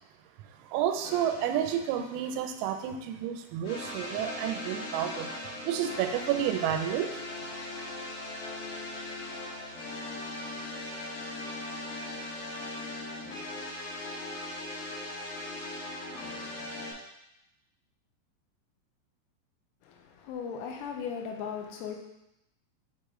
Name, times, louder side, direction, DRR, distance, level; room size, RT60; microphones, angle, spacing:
voice 1, 0.7-5.3 5.6-7.1, right 10 dB, 90° right, 3.3 m, -30 dB
sound 1, 1.0-2.7 3.6-16.9, left 2 dB, 60° left, 2.5 m, -39 dB
voice 2, 19.8-22.0, left 7 dB, 85° left, 3.5 m, -37 dB
8.6 x 3.1 x 3.6 m
omnidirectional pair, 5.9 m